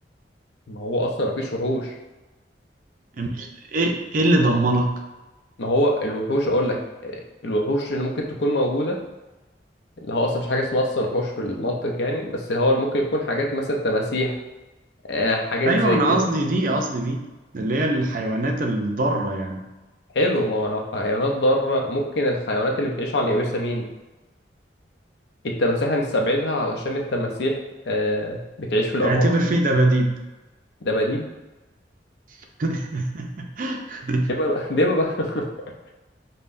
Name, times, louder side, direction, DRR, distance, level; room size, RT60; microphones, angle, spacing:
voice 1, 0.7-1.9 5.6-7.2 7.4-9.0 10.0-14.4 15.1-16.2 20.1-23.9 25.4-27.6 27.9-29.3 30.8-31.3 34.3-35.5, left 1 dB, 70° left, 1 dB, 0.6 m, -23 dB
voice 2, 3.2-4.9 15.7-17.2 17.5-19.6 29.0-30.2 32.6-34.3, right 1 dB, 50° right, 2 dB, 0.4 m, -22 dB
5.3 x 2.1 x 2.5 m, 1.1 s
head